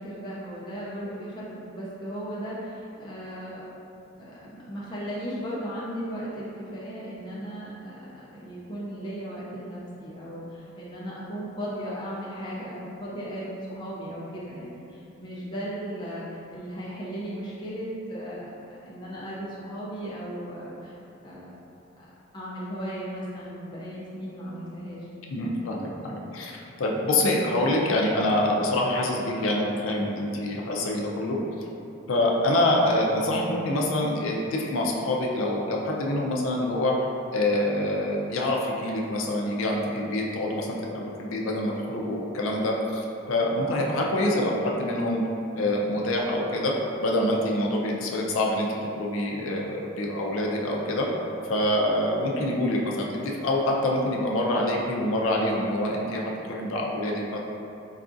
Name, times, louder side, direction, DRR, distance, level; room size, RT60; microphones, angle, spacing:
voice 1, 0.0-3.6 4.2-21.0 21.2-21.5 22.0-22.1 22.3-25.1, equal, 20° left, -8 dB, 0.5 m, -36 dB
voice 2, 25.3-31.7 32.1-37.0 37.3-45.3 45.6-46.7 47.0-48.7 48.9-51.1 51.4-57.4, left 1 dB, 80° left, -1 dB, 0.4 m, -26 dB
4.6 x 2.4 x 2.5 m, 2.8 s
head